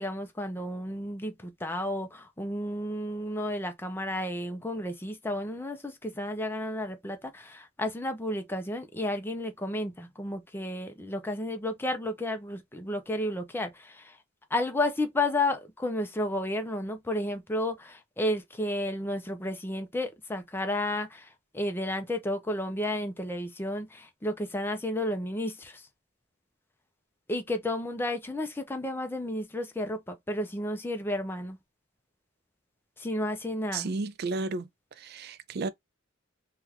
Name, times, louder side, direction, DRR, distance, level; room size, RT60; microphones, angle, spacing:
voice 1, 0.0-14.2 14.5-25.9 27.3-31.6 33.0-33.9, left 1 dB, 10° left, 0.5 m, -32 dB
voice 2, 33.7-35.7, right 3 dB, 50° right, 0.4 m, -33 dB
3.4 x 2.4 x 2.9 m
head